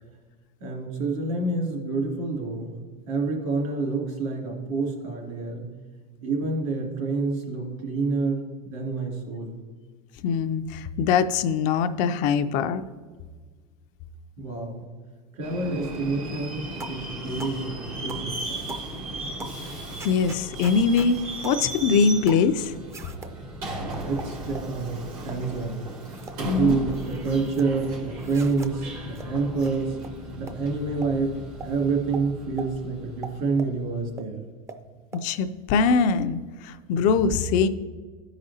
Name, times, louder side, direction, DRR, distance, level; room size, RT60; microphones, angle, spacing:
voice 1, 0.6-2.8 3.1-5.7 6.2-9.5 14.4-14.9 15.3-18.6 24.0-25.8 26.3-30.0 30.4-34.4, right 4 dB, 70° right, -1 dB, 2.4 m, -28 dB
voice 2, 10.2-12.8 20.0-21.2 21.4-22.7 26.4-26.8 35.2-37.7, left 5 dB, 45° left, 10 dB, 0.4 m, -22 dB
Subway metro underground, 15.4-33.9, right 1 dB, 90° right, 2.4 m, -36 dB
sound 1, 16.8-17.0 17.4-17.6 18.1-18.3 18.7-18.9 19.4-19.6 20.0-21.1 21.4-21.6 22.3-22.5 22.9-23.3 23.9-24.7 25.2-25.4 25.9-26.4 26.7-27.7 28.2-28.7 29.2-29.3 29.6-29.7 30.0-30.1 30.5-30.6 31.0-31.1 31.6-31.7 32.1-32.3 32.6-32.7 33.2-33.7 34.2-34.3 34.7-34.8 35.1-35.2, right 3 dB, 15° right, 0.4 m, -40 dB
12.5 x 4.9 x 2.8 m, 1.5 s
supercardioid pair, 135°, 19 cm